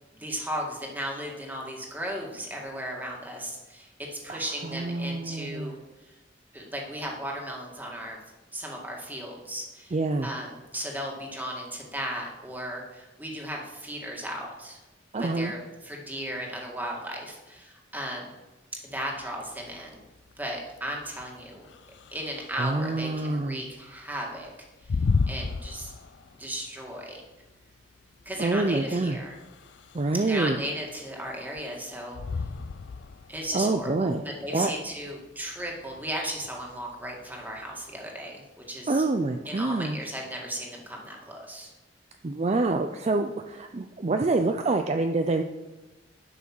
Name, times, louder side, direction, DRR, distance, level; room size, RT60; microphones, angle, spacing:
voice 1, 0.1-5.8 6.5-8.2 8.5-9.9 10.2-14.8 15.2-18.3 18.8-20.0 20.4-21.7 22.1-24.5 24.8-25.0 25.3-25.9 26.4-27.2 28.3-29.4 30.2-32.2 33.3-39.0 39.5-41.7, equal, 10° right, -1 dB, 2.1 m, -36 dB
voice 2, 4.3-5.7 9.9-10.3 15.1-15.5 22.5-23.6 28.4-29.2 29.9-30.6 33.5-34.2 34.5-34.7 38.9-40.0 42.2-45.4, right 3 dB, 35° right, 6 dB, 0.5 m, -26 dB
sound 1, 18.9-38.0, left 4 dB, 75° left, 0.5 m, -35 dB
11.0 x 6.1 x 6.1 m, 1.1 s
head